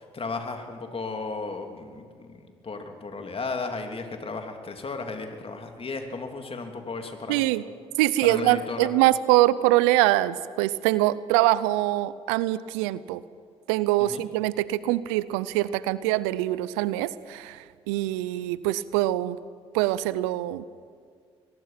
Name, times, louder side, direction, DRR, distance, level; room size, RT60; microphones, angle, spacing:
voice 1, 0.0-7.6 8.2-8.9 14.0-14.2, left 3 dB, 40° left, 5 dB, 3.2 m, -35 dB
voice 2, 7.3-7.6 8.0-13.2 13.7-19.4 19.7-20.6, right 16 dB, 85° right, 18 dB, 0.6 m, -24 dB
22.5 x 22.0 x 6.0 m, 2.1 s
hypercardioid pair, 45°, 15 cm